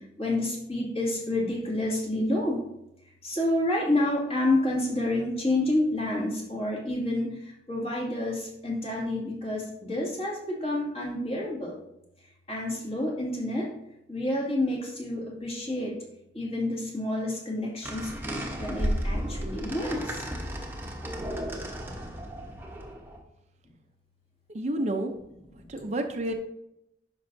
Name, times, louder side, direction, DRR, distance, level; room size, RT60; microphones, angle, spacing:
voice 1, 0.2-2.6 3.2-7.4 7.7-11.8 12.5-13.7 14.1-15.9 16.3-20.2, left 1 dB, 35° left, -3 dB, 2.3 m, -29 dB
sound 1, 17.8-23.2, equal, 10° right, 1.0 m, -33 dB
voice 2, 24.5-25.1 25.7-26.3, right 1 dB, 40° right, 5 dB, 0.6 m, -29 dB
10.0 x 6.1 x 2.7 m, 0.82 s
head